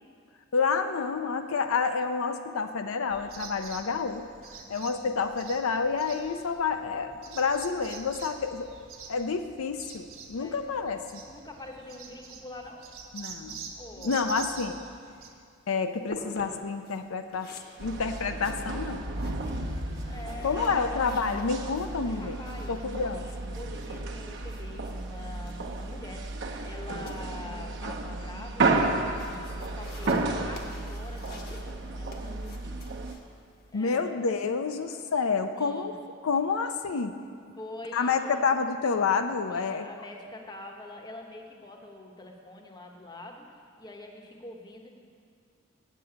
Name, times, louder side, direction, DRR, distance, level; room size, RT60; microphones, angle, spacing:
voice 1, 0.5-4.2 4.7-8.7 9.1-11.2 13.1-13.7 14.0-14.8 15.7-17.5 17.8-19.0 20.4-22.4 22.7-23.2 33.7-36.0 36.2-37.1 37.9-39.9, left 5 dB, 85° left, 7 dB, 0.5 m, -29 dB
sound 1, 3.1-15.3, right 5 dB, 80° right, 1.2 m, -46 dB
voice 2, 4.4-5.0 10.4-10.6 11.3-12.9 13.7-14.3 19.5-21.2 22.1-26.3 26.6-32.8 33.7-34.1 35.6-35.9 37.6-38.4 39.5-44.9, left 2 dB, 20° left, 2 dB, 1.0 m, -45 dB
sound 2, 15.2-34.0, left 2 dB, 50° left, 1.1 m, -49 dB
sound 3, 17.8-33.1, right 2 dB, 55° right, 0.9 m, -32 dB
8.0 x 7.4 x 8.6 m, 2.2 s
head